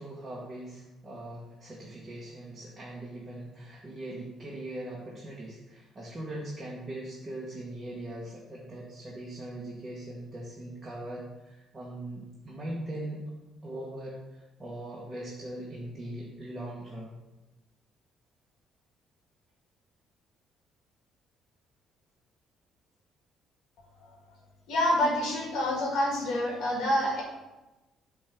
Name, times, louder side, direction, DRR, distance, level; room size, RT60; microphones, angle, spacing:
voice 1, 0.0-13.3 13.6-17.2, right 1 dB, 15° right, -5 dB, 1.3 m, -40 dB
voice 2, 24.7-27.2, left 1 dB, 75° left, -1 dB, 1.8 m, -27 dB
8.5 x 3.6 x 5.7 m, 1.1 s
cardioid pair, 160°, 0 cm